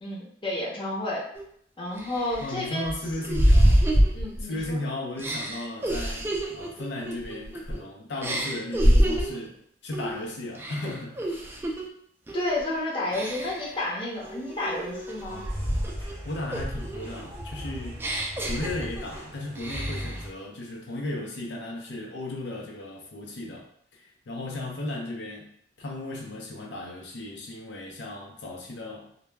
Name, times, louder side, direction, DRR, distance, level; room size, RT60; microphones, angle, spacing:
voice 1, 0.0-1.2 1.8-2.9 4.1-4.8 12.3-15.4, left 1 dB, 30° left, -4 dB, 0.6 m, -31 dB
sound 1, 1.3-1.4 2.0-4.7 5.2-7.8 8.2-9.5 9.9-10.2 10.6-11.9 12.3-12.6 13.1-13.7 14.2-16.1 16.5-19.2 19.6-20.2, equal, 15° right, 0.3 m, -26 dB
voice 2, 2.4-3.9 4.4-11.5 16.0-18.0 18.4-23.7 23.9-29.1, left 1 dB, 85° left, -1 dB, 0.5 m, -35 dB
sound 2, 15.3-20.3, equal, 30° right, 0.7 m, -38 dB
2.2 x 2.0 x 3.3 m, 0.67 s
head